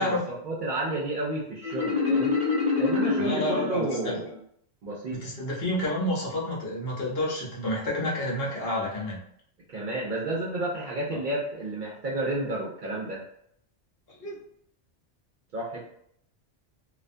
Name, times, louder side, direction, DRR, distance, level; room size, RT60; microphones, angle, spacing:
voice 1, 0.4-2.4 2.8-4.3 4.8-5.2 9.7-13.2 15.5-15.8, right 2 dB, 55° right, -4 dB, 0.6 m, -31 dB
Marimba xylophone, 1.6-4.4, left 4 dB, 5° right, 0.9 m, -27 dB
voice 2, 3.2-4.2 5.1-9.2 11.1-11.2 14.2-14.4, left 1 dB, 60° left, -5 dB, 0.9 m, -29 dB
2.4 x 2.2 x 2.5 m, 0.70 s
omnidirectional pair, 1.2 m